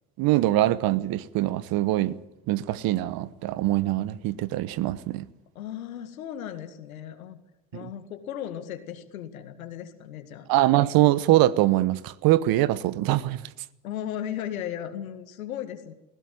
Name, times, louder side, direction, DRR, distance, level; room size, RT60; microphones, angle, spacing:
voice 1, 0.2-2.2 2.5-5.3 7.7-7.9 10.5-13.4, right 15 dB, 60° right, 1.1 m, -23 dB
voice 2, 5.6-7.4 7.7-10.5 13.8-15.9, left 10 dB, 85° left, 2.1 m, -36 dB
20.0 x 16.5 x 9.3 m
hypercardioid pair, 70°, 41 cm